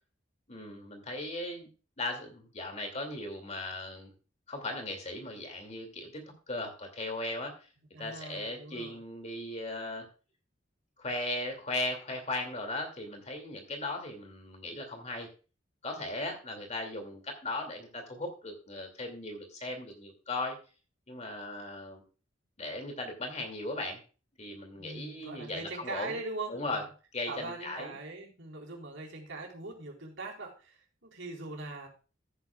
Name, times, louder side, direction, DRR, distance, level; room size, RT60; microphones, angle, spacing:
voice 1, 0.5-1.7 2.0-4.1 4.5-7.6 8.0-10.1 11.0-15.3 15.8-20.6 21.1-22.0 22.6-24.0 24.4-26.2 26.5-26.8 27.1-28.0, left 2 dB, 35° left, 4 dB, 2.5 m, -37 dB
voice 2, 7.9-9.0 24.7-26.8 27.3-31.9, right 2 dB, 75° right, 0 dB, 4.1 m, -41 dB
14.5 x 9.7 x 2.4 m, 0.35 s
head